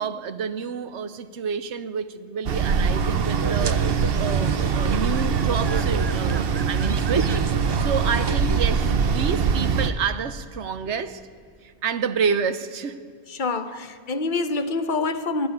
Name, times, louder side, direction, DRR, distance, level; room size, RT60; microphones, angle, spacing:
voice 1, 0.0-3.8 4.2-11.2 11.6-13.0, right 6 dB, 90° right, 1.2 m, -29 dB
sound 1, 2.5-9.9, right 5 dB, 60° right, 1.1 m, -23 dB
sound 2, 3.0-8.6, right 5 dB, 40° right, 0.4 m, -32 dB
voice 2, 13.3-15.5, left 3 dB, 45° left, 1.2 m, -26 dB
25.0 x 10.5 x 9.6 m
omnidirectional pair, 1.1 m